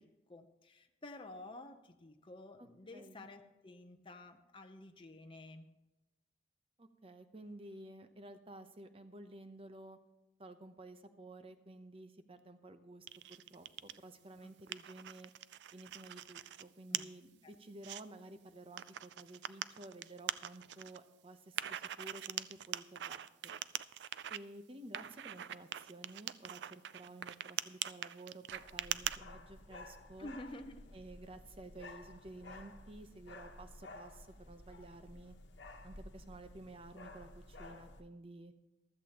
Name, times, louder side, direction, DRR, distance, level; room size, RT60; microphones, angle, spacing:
voice 1, 0.0-5.7 14.4-14.5 16.9-17.1 17.4-17.5 30.2-30.9, left 1 dB, 30° left, 5 dB, 0.7 m, -51 dB
voice 2, 2.6-3.3 6.8-10.0 10.4-15.3 15.7-23.6 24.3-30.3 30.9-35.4 35.8-38.5, right 2 dB, 30° right, 9 dB, 0.8 m, -53 dB
sound 1, 13.1-14.0 14.4-16.6 16.9-17.0 17.5-18.0 18.8-21.0 21.6-24.4 24.9-29.2, right 11 dB, 70° right, 0.4 m, -41 dB
sound 2, 28.5-38.0, left 2 dB, 90° left, 1.2 m, -53 dB
15.0 x 13.0 x 3.0 m, 1.0 s
head